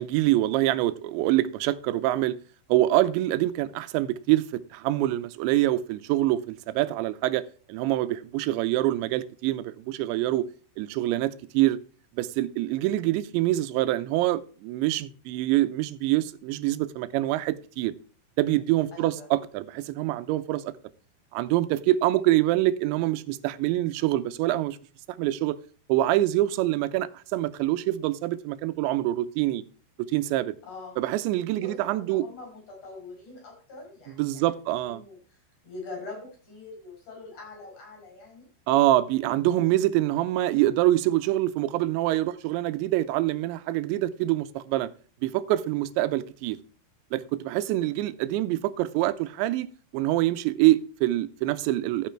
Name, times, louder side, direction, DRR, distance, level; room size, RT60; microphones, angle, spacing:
voice 1, 0.0-2.4 2.7-7.4 7.7-10.5 10.8-11.8 12.1-17.9 18.4-20.7 21.3-24.8 25.1-25.6 25.9-29.6 30.0-30.5 31.0-32.2 34.2-35.0 38.7-44.9 45.2-46.6 47.1-49.7 49.9-52.1, right 15 dB, 90° right, 3.0 m, -25 dB
voice 2, 18.9-19.3 30.6-31.0 31.6-38.5, left 3 dB, 45° left, 7.8 m, -44 dB
13.5 x 6.0 x 4.4 m
omnidirectional pair, 5.1 m